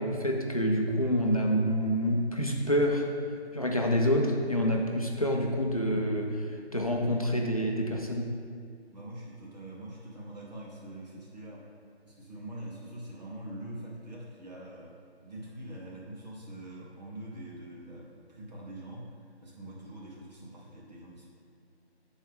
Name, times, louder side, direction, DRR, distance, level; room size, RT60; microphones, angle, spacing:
voice 1, 0.0-3.1 3.5-6.5 6.7-8.3, equal, 35° left, 0 dB, 0.6 m, -27 dB
voice 2, 8.9-11.7 12.0-14.9 15.2-19.1 19.4-21.3, right 1 dB, 40° right, -5 dB, 1.7 m, -44 dB
12.5 x 4.4 x 3.7 m, 2.3 s
figure-of-eight pair, 165°, 33 cm